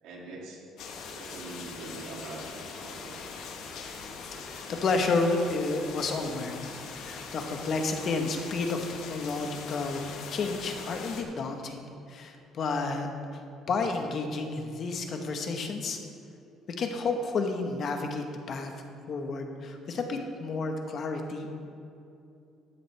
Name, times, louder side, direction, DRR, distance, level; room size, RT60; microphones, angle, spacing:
voice 1, 0.0-3.2, right 3 dB, 85° right, -3 dB, 2.3 m, -44 dB
sound 1, 0.8-11.2, left 5 dB, 75° left, 1.3 m, -41 dB
voice 2, 4.5-6.7 6.9-11.8 12.1-16.0 16.8-18.7 19.1-21.5, left 3 dB, 50° left, 4 dB, 1.2 m, -31 dB
13.0 x 9.8 x 3.4 m, 2.6 s
cardioid pair, 125°, 0 cm